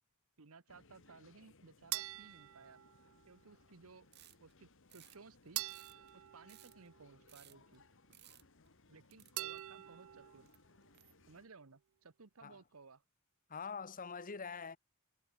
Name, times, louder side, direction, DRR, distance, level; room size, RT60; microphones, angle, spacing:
voice 1, 0.4-2.8 3.3-4.1 4.4-5.6 6.1-7.8 8.9-10.5 11.3-13.0, right 4 dB, 85° right, 1.2 m, -59 dB
sound 1, 0.7-11.5, left 3 dB, 65° left, 1.9 m, -67 dB
sound 2, 1.9-3.4 5.6-7.4 9.4-10.5, right 17 dB, 70° right, 0.4 m, -45 dB
sound 3, 4.1-4.5 4.9-5.2 5.5-6.9 7.3-7.8 8.1-8.7 9.1-9.8 10.5-11.4, right 13 dB, 50° right, 3.1 m, -61 dB
voice 2, 13.5-14.8, left 5 dB, 40° left, 1.1 m, -44 dB
head